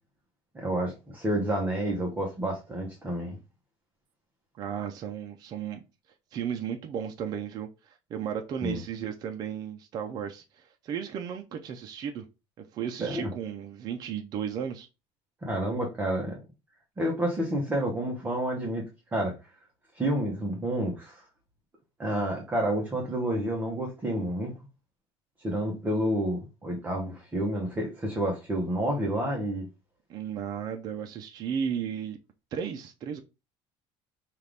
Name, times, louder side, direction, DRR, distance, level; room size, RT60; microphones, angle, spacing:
voice 1, 0.5-3.4 8.6-8.8 13.0-13.3 15.4-16.4 17.0-18.8 19.1-19.4 19.9-21.2 22.0-24.5 25.4-29.7, right 1 dB, 15° right, 0.9 m, -29 dB
voice 2, 4.6-5.8 6.3-12.2 12.7-14.9 30.1-32.2 32.5-33.2, right 8 dB, 40° right, 0.5 m, -34 dB
5.6 x 2.5 x 3.3 m
cardioid pair, 155°, 10 cm